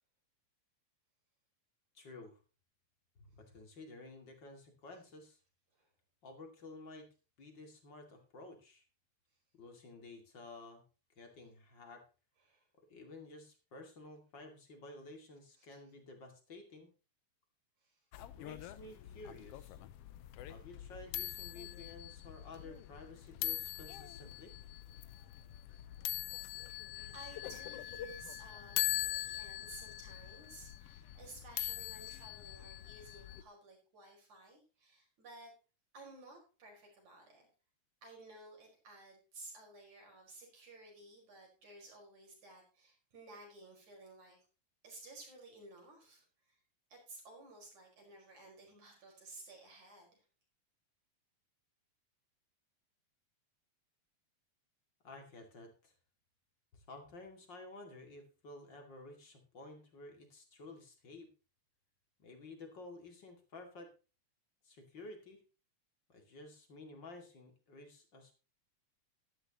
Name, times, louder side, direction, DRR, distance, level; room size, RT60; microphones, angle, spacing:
voice 1, 1.9-2.4 3.2-5.4 6.2-7.1 7.4-8.8 9.5-10.8 11.2-12.0 12.9-16.9 18.1-19.8 20.5-24.5 55.0-55.9 56.7-61.3 62.2-63.9 64.6-65.4 66.1-68.3, left 2 dB, 40° left, 4 dB, 2.8 m, -52 dB
sound 1, 18.1-33.4, left 13 dB, 90° left, 1.3 m, -42 dB
voice 2, 26.5-26.8 27.1-35.5 35.9-37.5 38.0-44.4 44.8-46.6 46.9-50.2, right 2 dB, 65° right, 0 dB, 6.2 m, -55 dB
13.0 x 11.5 x 2.9 m, 0.32 s
omnidirectional pair, 3.5 m